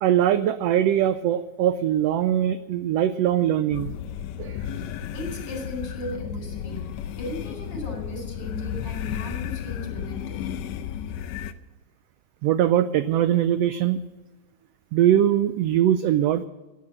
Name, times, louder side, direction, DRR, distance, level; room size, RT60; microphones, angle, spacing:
voice 1, 0.0-4.0 4.4-4.6 12.4-14.0 14.9-16.4, right 11 dB, 80° right, 12 dB, 1.4 m, -21 dB
sound 1, 3.7-11.5, left 9 dB, 75° left, 1.9 m, -33 dB
voice 2, 5.1-6.9 7.2-10.3, left 1 dB, 50° left, 2 dB, 5.3 m, -36 dB
15.5 x 9.4 x 7.5 m, 1.2 s
omnidirectional pair, 3.3 m